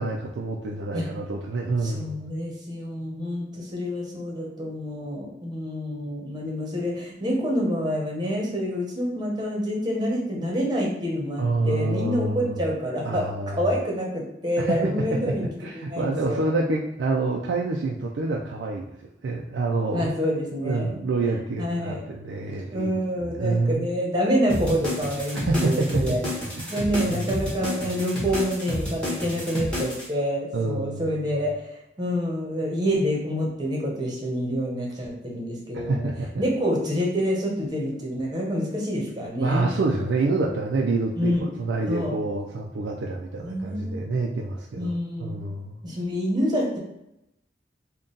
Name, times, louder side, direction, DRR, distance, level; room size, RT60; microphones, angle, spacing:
voice 1, 0.0-2.2 11.4-12.5 13.0-13.6 14.6-18.9 19.2-20.1 20.6-23.9 25.3-27.2 30.5-31.3 35.7-36.4 39.4-44.9 45.2-45.8, right 3 dB, 85° right, 0 dB, 0.4 m, -27 dB
voice 2, 1.8-16.4 19.9-21.0 21.6-22.0 22.7-26.2 26.7-31.5 32.0-36.1 36.4-39.7 41.2-41.5 41.9-42.1 43.4-44.0 44.8-45.4 45.8-46.8, equal, 25° right, -2 dB, 0.9 m, -27 dB
sound 1, 24.5-30.1, left 1 dB, 5° left, 1.3 m, -30 dB
3.8 x 2.3 x 3.9 m, 0.85 s
head